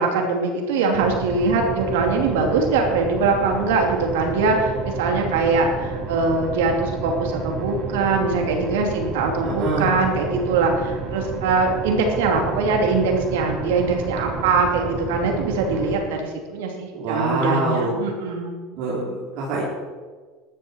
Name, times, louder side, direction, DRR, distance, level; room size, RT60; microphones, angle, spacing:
voice 1, 0.0-18.6, right 4 dB, 85° right, 2 dB, 2.7 m, -22 dB
sound 1, 0.9-16.0, right 4 dB, 45° right, 4.7 m, -30 dB
voice 2, 9.4-9.9 16.9-18.0 18.7-19.6, right 2 dB, 65° right, -6 dB, 3.9 m, -25 dB
13.5 x 12.0 x 4.5 m, 1.4 s
supercardioid pair, 95°, 0 cm